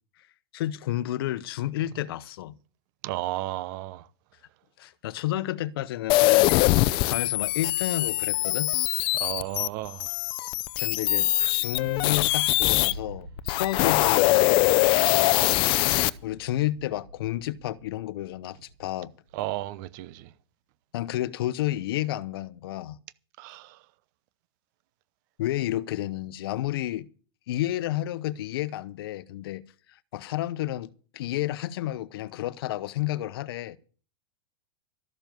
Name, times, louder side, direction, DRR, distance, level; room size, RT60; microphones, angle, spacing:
voice 1, 0.5-2.6 4.8-6.6 7.0-8.7 10.8-14.8 16.2-19.1 20.9-23.0 25.4-27.1 27.5-29.6 29.9-33.8, left 14 dB, 65° left, 0.9 m, -31 dB
voice 2, 3.0-4.1 9.1-10.1 11.4-11.5 15.1-15.5 19.3-20.3 23.4-23.8, right 16 dB, 50° right, 0.9 m, -34 dB
sound 1, 6.1-12.9 13.4-16.1, left 20 dB, 40° left, 0.6 m, -23 dB
sound 2, 11.8-19.4, right 1 dB, 75° right, 5.0 m, -45 dB
13.0 x 7.2 x 9.3 m
supercardioid pair, 140°, 13 cm